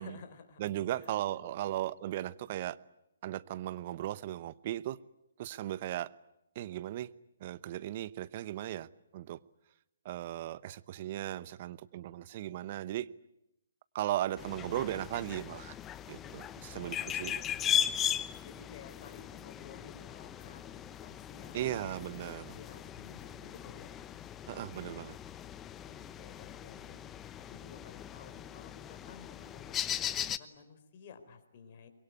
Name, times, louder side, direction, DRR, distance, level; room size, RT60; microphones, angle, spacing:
voice 1, 0.0-0.6 0.9-1.8 16.7-17.6 18.4-21.9 22.3-24.1 25.8-27.0 27.4-31.9, left 6 dB, 45° left, 8 dB, 4.2 m, -54 dB
voice 2, 0.6-2.8 3.2-5.0 5.4-6.1 6.5-7.1 7.4-8.9 9.1-9.4 10.0-13.1 13.9-15.7 16.1-17.4 21.5-22.6 24.5-25.2, right 13 dB, 40° right, 18 dB, 0.9 m, -37 dB
sound 1, 14.4-30.4, left 10 dB, 15° left, 0.9 m, -38 dB
24.5 x 22.5 x 9.6 m, 0.86 s
figure-of-eight pair, 135°, 0 cm